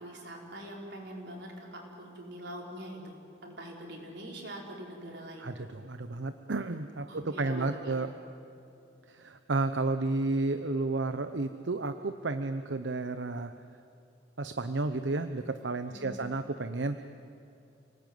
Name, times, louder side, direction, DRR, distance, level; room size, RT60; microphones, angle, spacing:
voice 1, 0.0-5.5 7.1-7.9 15.9-16.2, right 1 dB, 70° right, -1 dB, 5.4 m, -44 dB
voice 2, 5.4-8.1 9.1-13.5 14.4-17.0, right 3 dB, 90° right, 9 dB, 0.9 m, -32 dB
29.0 x 19.0 x 9.4 m, 2.7 s
head